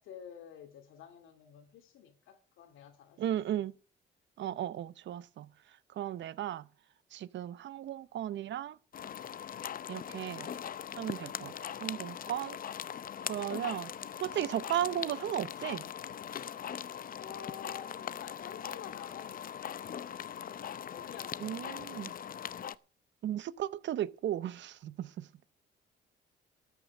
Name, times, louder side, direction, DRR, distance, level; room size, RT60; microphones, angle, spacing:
voice 1, 0.0-3.2 3.5-3.6 17.1-20.3 20.9-21.7, left 8 dB, 85° left, 2.5 m, -50 dB
voice 2, 3.2-3.7 4.4-5.5 6.0-6.7 7.1-8.8 9.9-10.5 11.0-12.6 13.3-13.9 14.2-15.8 21.4-22.1 23.2-25.5, right 11 dB, 65° right, 0.7 m, -35 dB
sound 1, 8.9-22.7, left 9 dB, 45° left, 0.6 m, -41 dB
13.5 x 6.1 x 8.4 m
cardioid pair, 90°, 20 cm